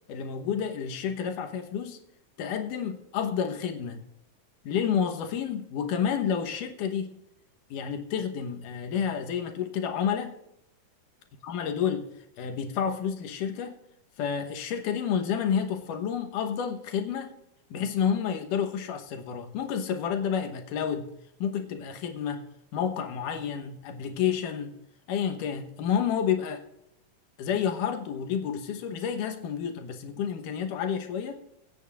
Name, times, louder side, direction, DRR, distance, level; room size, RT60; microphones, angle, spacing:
voice 1, 0.1-2.0 2.4-4.0 4.6-7.2 7.7-10.4 11.4-12.1 12.4-13.8 14.2-17.3 17.7-21.1 21.4-22.4 22.7-24.7 25.1-26.6 27.4-31.4, left 7 dB, 80° left, 6 dB, 2.7 m, -30 dB
25.0 x 8.8 x 2.5 m, 0.83 s
omnidirectional pair, 3.7 m